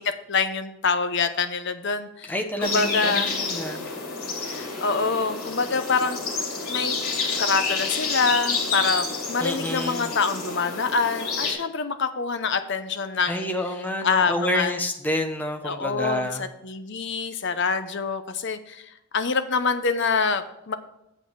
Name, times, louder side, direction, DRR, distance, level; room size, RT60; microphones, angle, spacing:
voice 1, 0.0-3.3 4.4-6.2 6.7-7.0 7.4-13.5 14.0-14.7 15.6-20.7, left 4 dB, 55° left, 9 dB, 0.7 m, -26 dB
voice 2, 2.3-3.8 9.4-10.1 13.2-16.4, left 1 dB, 10° left, 4 dB, 0.8 m, -28 dB
sound 1, 2.6-11.5, left 4 dB, 80° left, 2.7 m, -29 dB
8.0 x 7.6 x 4.6 m, 0.83 s
head